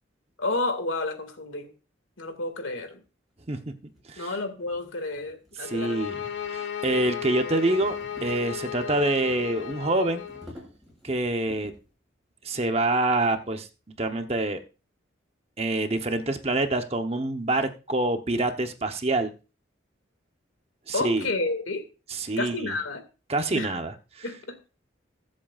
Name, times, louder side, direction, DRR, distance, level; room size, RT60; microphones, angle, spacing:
voice 1, 0.4-1.7 2.2-3.0 4.2-6.0 20.9-21.9 22.4-23.0 23.5-23.7 24.2-24.6, left 2 dB, 85° left, 7 dB, 2.1 m, -30 dB
sound 1, 3.1-3.2 3.9-11.9, left 1 dB, ahead, 5.9 m, -51 dB
sound 2, 5.6-10.5, left 8 dB, 65° left, 1.4 m, -35 dB
voice 2, 5.6-6.2 6.5-10.2 11.0-11.7 12.4-13.7 14.0-14.6 15.6-19.3 20.9-21.3 22.1-22.7 23.3-24.2, right 2 dB, 30° right, 7 dB, 0.9 m, -26 dB
22.0 x 7.6 x 2.4 m, 0.32 s
head